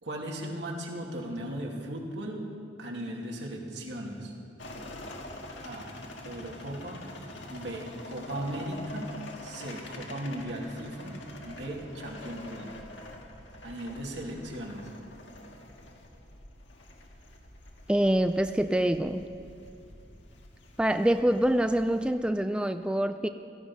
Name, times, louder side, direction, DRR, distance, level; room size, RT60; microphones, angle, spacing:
voice 1, 0.0-2.5 2.8-4.3 5.6-5.9 6.2-7.1 7.5-9.1 9.4-11.2 11.4-12.7 13.6-14.9, right 1 dB, 75° right, -1 dB, 2.6 m, -37 dB
sound 1, 4.6-22.1, left 1 dB, 85° left, 1.8 m, -46 dB
voice 2, 17.9-19.3 20.8-23.3, right 1 dB, 5° right, 8 dB, 0.3 m, -25 dB
17.0 x 14.0 x 5.6 m, 2.6 s
head